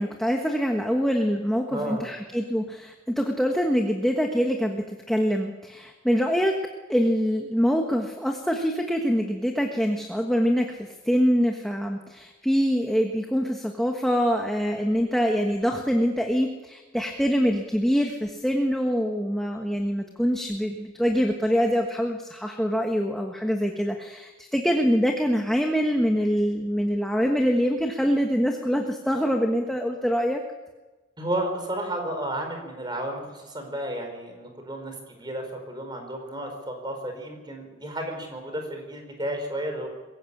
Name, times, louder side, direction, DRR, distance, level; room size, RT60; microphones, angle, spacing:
voice 1, 0.0-6.6 6.9-30.4, equal, ahead, 2 dB, 1.4 m, -24 dB
voice 2, 1.7-2.0 31.2-39.9, right 1 dB, 20° right, 4 dB, 4.6 m, -32 dB
22.5 x 16.0 x 8.6 m, 1.2 s
head